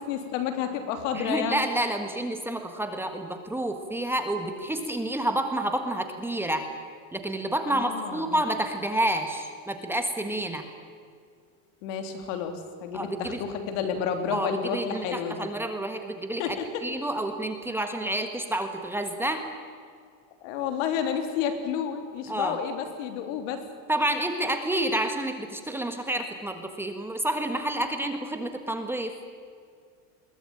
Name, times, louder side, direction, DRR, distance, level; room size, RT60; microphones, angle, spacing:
voice 1, 0.1-1.6 7.7-8.4 11.8-15.4 16.4-16.9 20.4-23.6, left 7 dB, 65° left, 6 dB, 3.5 m, -30 dB
voice 2, 1.1-6.7 7.1-10.6 12.9-13.4 14.3-16.6 16.8-19.4 22.3-22.6 23.9-29.2, right 1 dB, 5° right, 6 dB, 1.6 m, -29 dB
22.0 x 19.0 x 9.0 m, 2.1 s
supercardioid pair, 145°, 40 cm